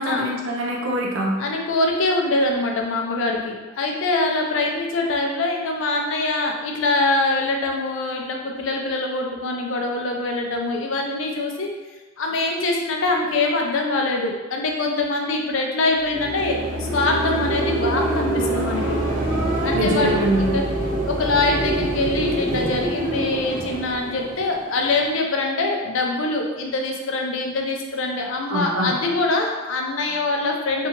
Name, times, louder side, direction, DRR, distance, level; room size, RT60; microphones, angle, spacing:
voice 1, 0.0-1.3 19.7-20.6 28.5-29.0, right 1 dB, 75° right, -1 dB, 0.6 m, -23 dB
voice 2, 1.4-11.7 12.2-19.0 19.6-20.7 21.1-30.9, left 2 dB, 70° left, 1 dB, 0.4 m, -24 dB
sound 1, 16.0-25.0, right 1 dB, 45° right, 0.7 m, -25 dB
2.7 x 2.4 x 2.8 m, 1.2 s
head